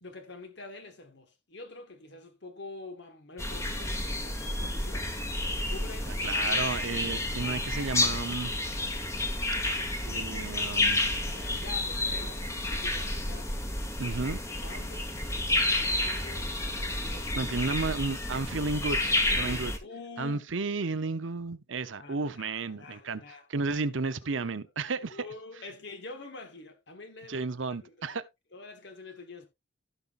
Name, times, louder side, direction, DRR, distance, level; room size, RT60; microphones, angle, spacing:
voice 1, 0.0-5.1 5.5-6.6 6.8-8.0 10.1-13.5 14.0-15.1 15.6-17.5 19.3-20.4 22.0-23.5 24.3-24.5 25.1-27.5 27.8-28.2 28.5-29.5, left 3 dB, 60° left, 1.4 m, -47 dB
sound 1, 3.4-19.8, left 2 dB, 15° left, 1.3 m, -30 dB
voice 2, 6.1-8.5 9.7-11.0 14.0-14.4 17.4-19.7 20.2-23.2 23.5-25.2 27.3-28.2, right 3 dB, 80° right, 0.8 m, -33 dB
16.0 x 5.6 x 2.5 m
head